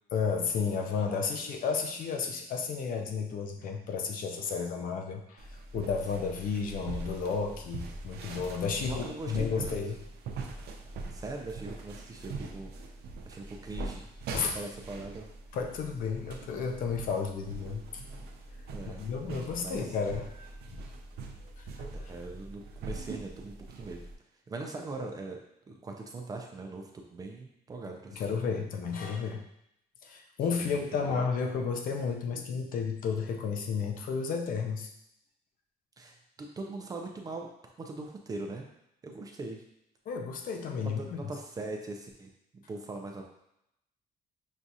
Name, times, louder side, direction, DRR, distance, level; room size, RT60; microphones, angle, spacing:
voice 1, 0.1-5.5 5.7-10.0 14.3-14.5 15.5-18.0 18.9-20.5 21.6-21.9 28.1-29.4 30.0-34.9 40.1-41.0, left 5 dB, 60° left, 3 dB, 0.5 m, -32 dB
sound 1, 5.4-24.1, right 3 dB, 85° right, 0.5 m, -42 dB
voice 2, 8.8-9.8 11.1-12.7 13.2-14.1 14.4-15.3 18.7-19.0 19.6-19.9 22.1-24.0 24.5-28.4 30.6-31.2 36.0-38.7 39.0-39.6 40.8-43.2, right 3 dB, 25° right, 2 dB, 0.4 m, -41 dB
6.1 x 2.3 x 2.7 m, 0.79 s
cardioid pair, 175°, 16 cm